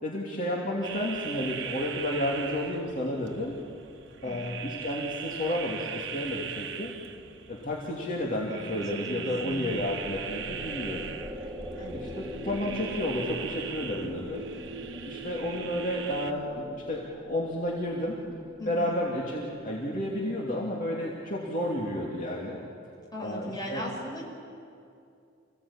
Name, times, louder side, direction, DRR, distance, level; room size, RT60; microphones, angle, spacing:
voice 1, 0.0-3.6 4.2-6.9 7.5-11.1 11.9-14.4 15.0-18.2 18.7-22.6 23.2-23.8, left 1 dB, 45° left, -3 dB, 2.8 m, -31 dB
sound 1, 0.8-16.3, right 8 dB, 90° right, 1.1 m, -40 dB
voice 2, 9.1-9.8 11.8-12.1 18.6-19.0 23.1-24.2, equal, 25° left, -2 dB, 5.5 m, -38 dB
sound 2, 9.5-20.8, equal, 5° right, 2.0 m, -43 dB
sound 3, 10.4-16.3, right 3 dB, 45° right, 1.8 m, -45 dB
28.5 x 17.0 x 8.8 m, 2.5 s
head